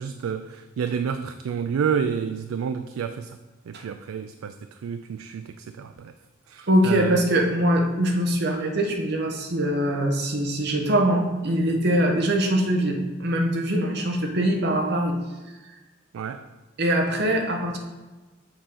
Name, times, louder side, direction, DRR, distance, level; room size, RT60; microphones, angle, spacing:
voice 1, 0.0-3.4 3.7-6.1 6.5-7.3 16.1-16.5, right 7 dB, 90° right, 9 dB, 0.3 m, -29 dB
voice 2, 6.7-15.1 16.8-17.8, right 1 dB, 55° right, 2 dB, 1.1 m, -23 dB
7.2 x 3.7 x 5.6 m, 1.2 s
head